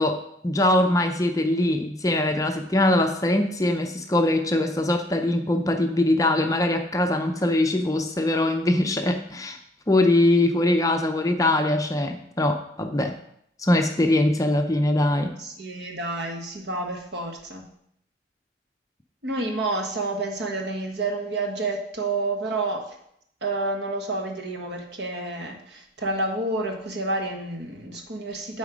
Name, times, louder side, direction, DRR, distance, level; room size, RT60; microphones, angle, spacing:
voice 1, 0.0-9.6 9.9-13.2 13.6-15.4, left 1 dB, 20° left, 5 dB, 0.5 m, -22 dB
voice 2, 15.4-17.7 19.2-22.9 23.4-28.6, right 2 dB, 65° right, 2 dB, 1.3 m, -29 dB
8.8 x 4.2 x 5.0 m, 0.72 s
head